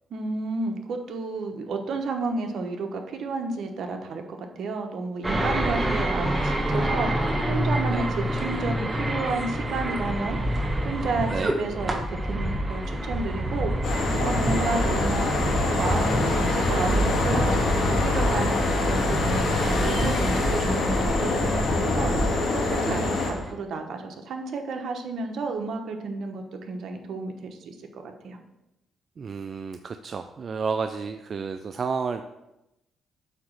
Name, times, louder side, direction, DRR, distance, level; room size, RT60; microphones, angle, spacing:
voice 1, 0.1-10.4 10.8-13.7 14.2-28.4, right 3 dB, 65° right, 4 dB, 1.0 m, -32 dB
sound 1, 5.2-23.5, right 1 dB, 15° right, 1.1 m, -27 dB
sound 2, 13.8-23.3, left 3 dB, 70° left, 1.8 m, -25 dB
voice 2, 29.2-32.2, right 5 dB, 45° right, 8 dB, 0.3 m, -31 dB
8.2 x 3.0 x 6.3 m, 0.92 s
cardioid pair, 90°, 0 cm